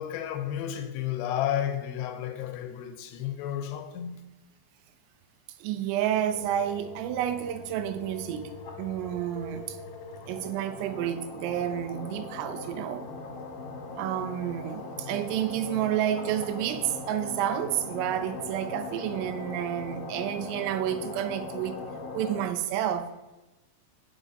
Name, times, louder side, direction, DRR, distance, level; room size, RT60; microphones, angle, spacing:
voice 1, 0.0-4.2, left 10 dB, 85° left, 2.8 m, -32 dB
voice 2, 5.6-8.5 8.8-9.8 10.3-13.1 14.0-21.8 22.1-23.1, right 11 dB, 85° right, 2.7 m, -30 dB
sound 1, 6.3-22.5, left 3 dB, 60° left, 1.9 m, -40 dB
15.5 x 5.9 x 2.7 m
omnidirectional pair, 4.8 m